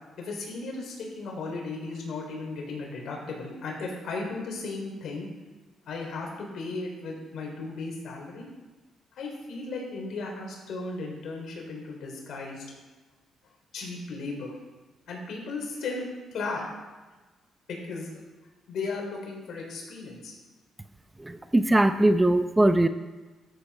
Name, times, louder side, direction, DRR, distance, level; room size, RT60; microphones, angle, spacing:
voice 1, 0.2-5.3 5.9-8.5 9.2-12.6 13.7-14.6 15.1-16.0 16.3-16.7 17.7-18.1 18.7-20.3, left 3 dB, 70° left, 0 dB, 3.9 m, -35 dB
voice 2, 21.2-22.9, right 1 dB, 15° right, 10 dB, 0.6 m, -21 dB
13.5 x 8.3 x 4.9 m, 1.2 s
cardioid pair, 90°, 0 cm